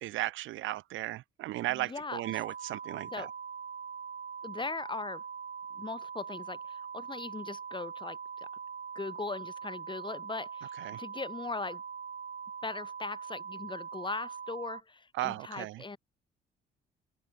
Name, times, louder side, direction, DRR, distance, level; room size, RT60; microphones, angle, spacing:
voice 1, 0.0-3.3 10.8-11.0 15.1-15.8, right 16 dB, 80° right, 0.5 m, -35 dB
voice 2, 1.7-2.2 3.1-3.3 4.4-5.2 5.7-8.5 8.9-11.8 12.6-16.0, left 3 dB, 25° left, 3.0 m, -39 dB
sound 1, 2.2-14.8, right 6 dB, 45° right, 5.2 m, -42 dB
cardioid pair, 90°, 20 cm